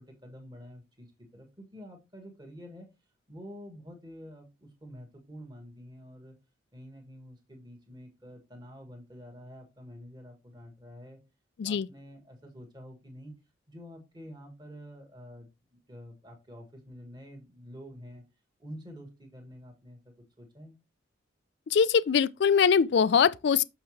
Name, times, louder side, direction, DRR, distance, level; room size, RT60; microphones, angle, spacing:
voice 1, 0.0-2.9 3.3-6.3 6.7-11.2 11.6-13.3 13.7-18.2 18.6-20.7, equal, 20° right, 1.6 m, -48 dB
voice 2, 21.7-23.6, left 6 dB, 60° left, 0.3 m, -22 dB
6.5 x 5.6 x 3.2 m
head